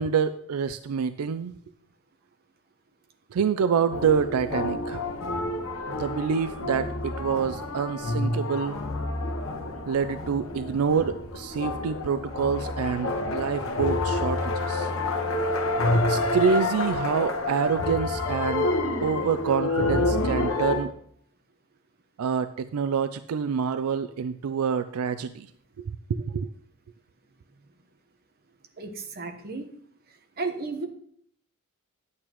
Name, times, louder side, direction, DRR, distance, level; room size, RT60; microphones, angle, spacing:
voice 1, 0.0-1.5 3.3-5.0 5.9-8.8 9.9-14.9 15.9-18.7 19.0-20.9 22.2-25.5 25.8-26.5, right 6 dB, 80° right, 12 dB, 0.4 m, -27 dB
sound 1, 3.9-20.8, left 2 dB, 65° left, 1.2 m, -28 dB
voice 2, 28.8-29.7 30.4-30.9, right 3 dB, 45° right, 5 dB, 1.1 m, -33 dB
10.0 x 8.6 x 3.0 m, 0.66 s
head